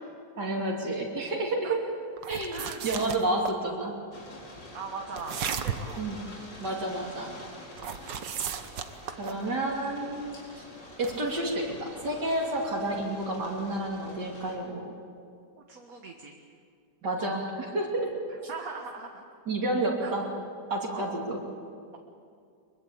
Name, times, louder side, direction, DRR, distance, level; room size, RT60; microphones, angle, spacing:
voice 1, 0.4-1.8 2.3-4.0 6.0-6.2 6.6-7.3 9.1-10.6 11.0-14.9 17.0-18.1 19.5-20.3 20.7-21.4, right 2 dB, 70° right, -2 dB, 3.4 m, -30 dB
sound 1, 2.2-3.6 5.2-6.0 7.8-9.5 11.0-11.3, right 7 dB, 90° right, 1.8 m, -35 dB
voice 2, 2.5-2.8 4.7-6.1 9.2-9.4 15.7-16.4 18.5-19.2 20.0-20.1 20.9-21.2, right 4 dB, 55° right, 2 dB, 1.9 m, -40 dB
sound 2, 4.1-14.6, left 1 dB, 90° left, 4.9 m, -47 dB
23.5 x 23.0 x 8.6 m, 2.4 s
omnidirectional pair, 1.9 m